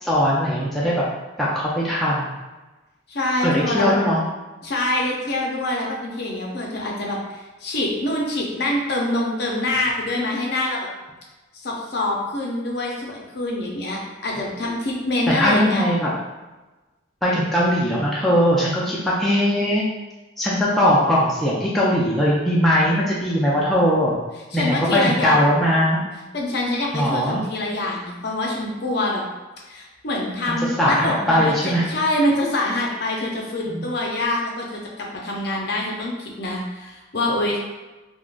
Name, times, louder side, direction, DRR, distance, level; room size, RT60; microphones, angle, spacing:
voice 1, 0.0-1.0 1.4-2.3 3.4-4.2 15.3-16.1 17.2-19.8 20.4-24.2 24.5-26.0 26.9-27.4 30.8-31.9 33.7-33.9, equal, ahead, -7 dB, 0.3 m, -20 dB
voice 2, 3.1-4.0 4.6-10.9 11.6-15.8 24.5-25.4 26.3-29.2 29.7-37.6, left 1 dB, 55° left, -2 dB, 0.6 m, -25 dB
3.6 x 2.0 x 2.4 m, 1.1 s
head